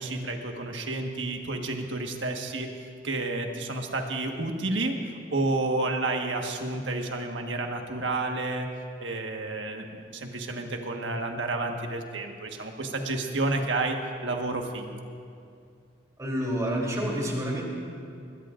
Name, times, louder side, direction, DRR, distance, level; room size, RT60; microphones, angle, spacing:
voice 1, 0.0-2.7 3.0-4.9 5.3-8.7 9.0-15.0, right 2 dB, 80° right, 3 dB, 1.5 m, -30 dB
voice 2, 16.2-17.6, equal, 20° right, -2 dB, 3.3 m, -28 dB
21.5 x 21.0 x 2.6 m, 2.4 s
head